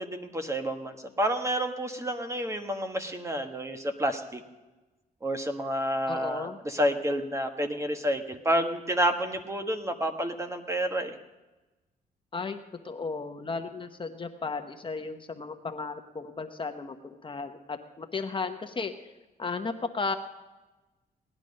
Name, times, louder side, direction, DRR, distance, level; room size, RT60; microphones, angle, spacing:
voice 1, 0.0-4.4 5.2-11.1, equal, 15° right, 6 dB, 1.4 m, -29 dB
voice 2, 6.1-6.6 12.3-12.6 12.8-18.9 19.4-20.1, left 4 dB, 30° left, 6 dB, 1.0 m, -34 dB
18.0 x 11.0 x 5.3 m, 1.1 s
cardioid pair, 105°, 17 cm